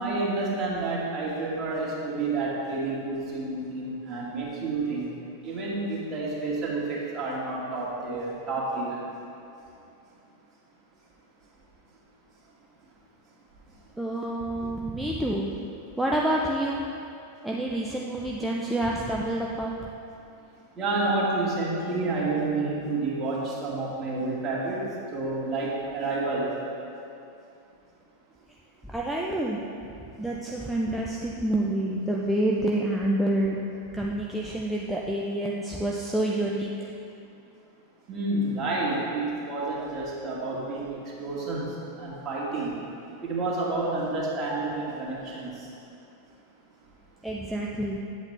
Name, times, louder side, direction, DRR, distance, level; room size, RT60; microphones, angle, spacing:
voice 1, 0.0-5.1 5.4-9.0 20.8-24.8 25.1-26.5 38.1-42.7 43.2-45.7, right 2 dB, 25° right, -5 dB, 2.3 m, -29 dB
voice 2, 14.0-15.5 16.0-16.8 17.4-19.8 28.9-29.6 30.2-33.6 33.9-36.9 47.2-48.0, right 1 dB, 5° right, -3 dB, 0.6 m, -28 dB
9.6 x 8.1 x 3.4 m, 2.6 s
figure-of-eight pair, 90°, 0 cm